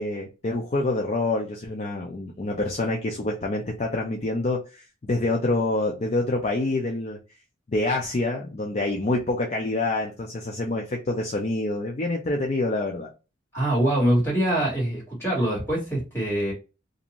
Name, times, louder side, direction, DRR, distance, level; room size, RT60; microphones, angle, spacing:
voice 1, 0.0-7.2 7.7-13.1, left 2 dB, 35° left, 0.4 m, -26 dB
voice 2, 13.5-16.5, right 1 dB, 10° left, 1.7 m, -24 dB
2.6 x 2.5 x 2.9 m
head